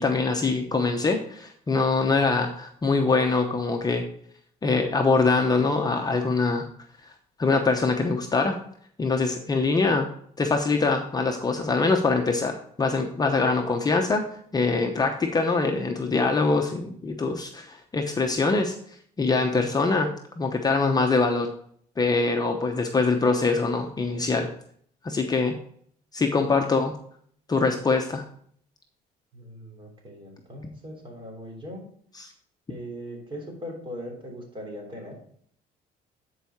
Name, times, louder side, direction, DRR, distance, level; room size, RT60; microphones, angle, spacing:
voice 1, 0.0-4.0 4.6-6.7 7.4-8.6 9.0-10.1 10.4-14.2 14.5-18.7 19.2-21.5 22.0-24.5 25.0-25.6 26.1-26.9 27.5-28.2 32.2-32.3, left 3 dB, 25° left, 3 dB, 0.8 m, -23 dB
voice 2, 29.3-31.9 32.7-35.2, equal, 30° right, 0 dB, 3.3 m, -39 dB
10.0 x 4.8 x 4.5 m, 0.62 s
cardioid pair, 110°, 17 cm